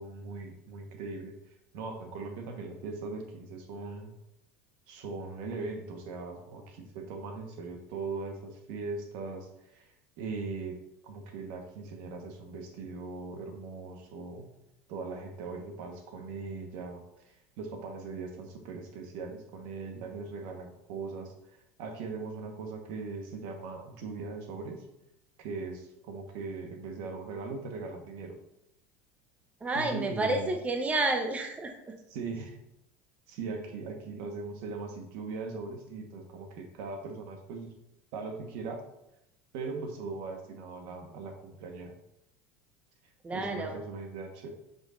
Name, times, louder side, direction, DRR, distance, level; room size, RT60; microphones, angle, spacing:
voice 1, 0.0-1.3 1.7-4.1 4.9-14.5 14.9-24.8 25.4-28.4 29.7-30.5 32.1-32.6 33.3-37.7 38.1-38.8 39.5-41.9 43.3-44.5, right 4 dB, 65° right, 4 dB, 1.2 m, -40 dB
voice 2, 29.6-31.9 43.2-43.8, right 2 dB, 15° right, 4 dB, 0.7 m, -30 dB
7.8 x 5.2 x 2.6 m, 0.85 s
supercardioid pair, 110°, 8 cm